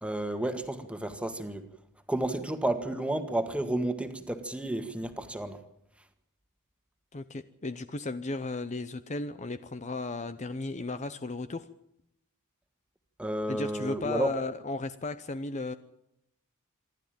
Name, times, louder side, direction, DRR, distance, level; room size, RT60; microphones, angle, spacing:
voice 1, 0.0-1.7 2.1-5.6 13.2-14.3, right 1 dB, 5° right, 8 dB, 1.7 m, -31 dB
voice 2, 7.1-11.7 13.5-15.7, left 3 dB, 30° left, 12 dB, 0.7 m, -35 dB
27.0 x 12.0 x 9.0 m, 0.78 s
head